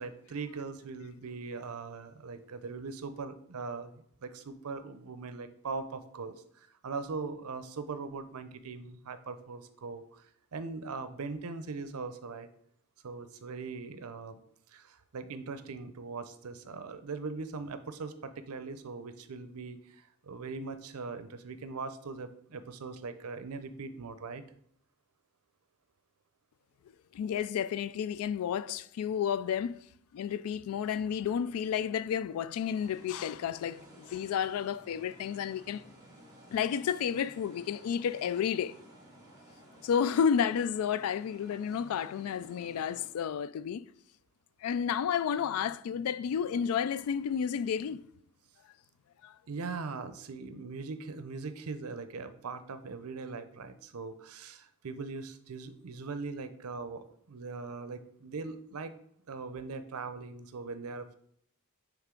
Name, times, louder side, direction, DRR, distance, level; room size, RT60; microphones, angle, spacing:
voice 1, 0.0-3.9 4.2-10.3 10.5-12.5 13.0-14.4 14.7-24.4 49.5-58.9 59.3-61.1, right 4 dB, 80° right, 0.6 m, -40 dB
voice 2, 27.1-29.8 30.1-35.8 36.5-38.7 39.8-43.8 44.6-48.0 49.2-49.3, left 8 dB, 70° left, 0.3 m, -31 dB
sound 1, 32.6-43.1, right 1 dB, 15° right, 1.6 m, -55 dB
9.0 x 3.5 x 3.7 m
head